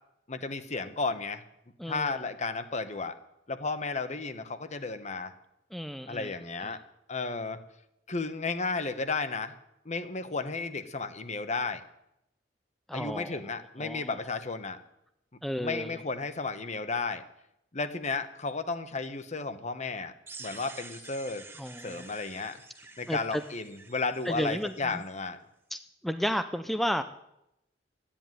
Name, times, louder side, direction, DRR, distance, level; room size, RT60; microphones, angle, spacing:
voice 1, 0.3-1.4 1.9-3.2 3.5-5.3 6.1-6.8 7.1-7.6 8.1-9.5 9.8-11.8 12.9-14.8 15.6-17.2 17.7-20.1 20.4-21.4 21.8-22.6 23.0-25.4, left 4 dB, 40° left, 10 dB, 1.2 m, -33 dB
voice 2, 1.8-2.2 5.7-6.3 6.6-6.8 12.9-13.4 13.8-14.2 15.4-16.0 21.6-22.0 23.1-23.4 24.3-25.0 25.7-27.0, equal, ahead, 9 dB, 0.6 m, -33 dB
sound 1, 20.3-25.1, right 3 dB, 15° right, 1.3 m, -49 dB
13.0 x 10.0 x 9.3 m, 0.83 s
head